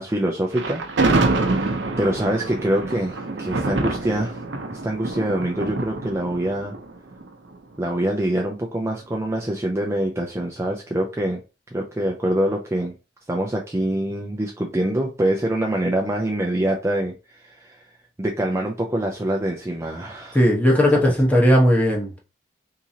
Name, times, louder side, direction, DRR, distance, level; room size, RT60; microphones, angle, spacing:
voice 1, 0.0-4.4 4.7-6.8 7.8-11.4 11.7-12.9 13.3-17.9 18.2-20.4 21.0-21.1, right 1 dB, 15° right, 0.4 m, -25 dB
Thunder, 0.5-7.7, right 2 dB, 80° right, 0.6 m, -26 dB
voice 2, 20.3-22.2, equal, 10° left, 1.1 m, -17 dB
3.7 x 2.9 x 2.8 m
head